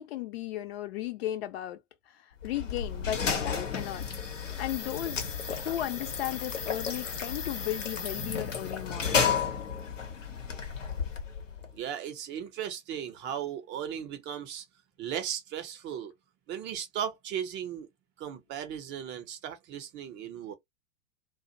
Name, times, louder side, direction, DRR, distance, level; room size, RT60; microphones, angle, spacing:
voice 1, 0.0-1.8 2.2-4.1 4.6-9.3, left 13 dB, 55° left, 0.6 m, -35 dB
sound 1, 2.4-11.7, left 6 dB, 85° left, 0.8 m, -33 dB
voice 2, 11.7-14.6 15.0-16.1 16.5-17.9 18.2-20.5, right 9 dB, 30° right, 0.6 m, -36 dB
2.4 x 2.0 x 2.7 m
figure-of-eight pair, 95°, 37 cm